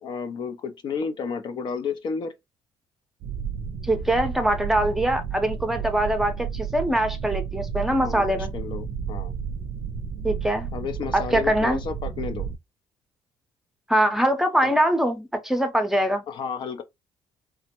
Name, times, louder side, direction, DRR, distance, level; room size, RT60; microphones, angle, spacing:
voice 1, 0.0-2.3 7.9-9.3 10.7-12.5 14.6-14.7 16.3-16.8, left 5 dB, 50° left, 0.4 m, -32 dB
sound 1, 3.2-12.6, right 7 dB, 60° right, 0.4 m, -32 dB
voice 2, 3.8-8.5 10.2-10.7 11.1-11.8 13.9-16.2, right 1 dB, 5° right, 0.6 m, -23 dB
3.3 x 2.0 x 2.8 m
cardioid pair, 130°, 10 cm